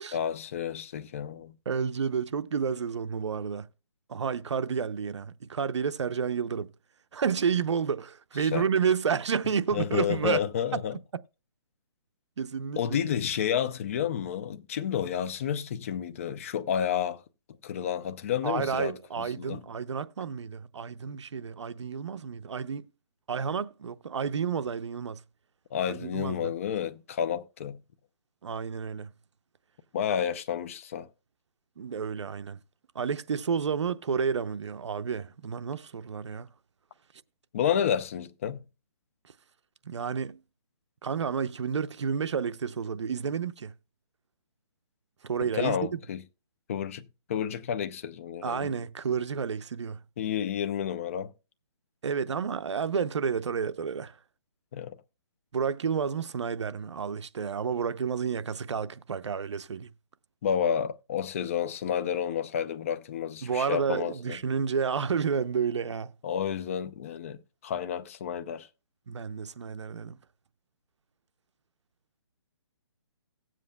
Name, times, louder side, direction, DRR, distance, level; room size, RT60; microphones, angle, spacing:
voice 1, 0.1-1.5 8.4-8.7 9.7-11.0 12.8-17.2 17.6-19.6 25.7-27.8 29.9-31.1 37.5-38.6 45.4-46.2 46.7-48.7 50.2-51.3 54.7-55.0 60.4-64.4 66.2-68.7, left 8 dB, 30° left, 0.5 m, -30 dB
voice 2, 1.7-3.7 4.1-6.7 7.1-10.4 10.7-10.8 12.4-13.0 18.4-22.8 23.3-25.2 25.9-26.5 28.4-29.1 31.8-32.6 32.9-36.5 39.9-40.4 41.0-43.7 45.2-46.0 48.4-50.0 52.0-54.1 55.5-59.9 63.4-66.1 69.1-70.2, right 6 dB, 75° right, 0.6 m, -30 dB
18.0 x 7.6 x 2.2 m
hypercardioid pair, 165°, 15 cm